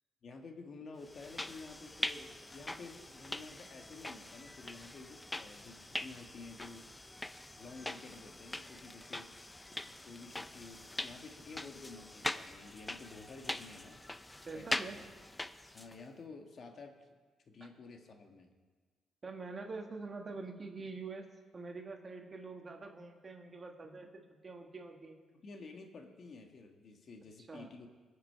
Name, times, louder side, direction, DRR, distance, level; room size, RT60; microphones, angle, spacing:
voice 1, 0.2-6.9 7.6-9.3 9.8-14.0 14.5-15.0 15.7-17.1 17.5-18.5 25.3-27.9, left 4 dB, 50° left, 4 dB, 1.4 m, -51 dB
sound 1, 1.1-16.0, left 1 dB, 15° left, 0.4 m, -43 dB
voice 2, 14.4-15.0 19.2-21.3 21.5-25.2 27.5-27.7, right 3 dB, 35° right, 3 dB, 1.6 m, -45 dB
20.5 x 6.8 x 4.6 m, 1.4 s
cardioid pair, 90°, 0 cm